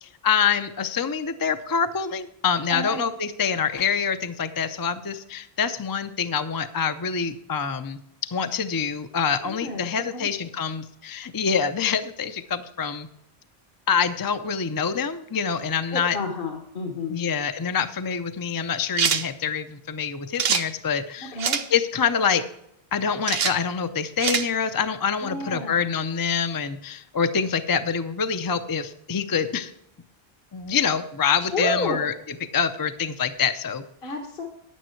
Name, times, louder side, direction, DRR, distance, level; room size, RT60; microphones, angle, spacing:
voice 1, 0.0-8.0 8.3-13.1 13.9-16.2 17.1-21.4 21.7-22.4 22.9-29.7 30.5-32.1 32.5-33.8, left 6 dB, 25° left, 10 dB, 0.5 m, -26 dB
voice 2, 2.7-3.0 9.4-9.8 10.1-10.3 15.9-17.2 21.2-21.6 25.2-25.9 31.5-32.0 34.0-34.4, left 2 dB, 65° left, 3 dB, 1.4 m, -30 dB
sound 1, 19.0-19.3 20.4-20.7 21.4-21.7 23.3-23.6 24.2-24.5, right 7 dB, 75° right, 1.0 m, -23 dB
10.0 x 9.2 x 4.5 m, 0.77 s
omnidirectional pair, 1.0 m